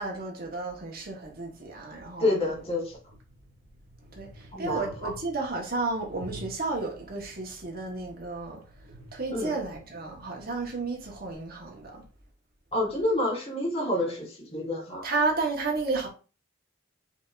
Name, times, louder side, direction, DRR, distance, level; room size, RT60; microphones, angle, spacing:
voice 1, 0.0-2.3 4.1-8.6 9.1-12.0 15.0-16.1, right 3 dB, 50° right, 1.3 m, -32 dB
voice 2, 2.2-3.0 4.5-5.1 9.3-9.6 12.7-15.0, left 1 dB, 30° left, 1.6 m, -28 dB
sound 1, 2.4-11.3, equal, 85° right, 1.4 m, -50 dB
5.1 x 3.5 x 2.6 m
head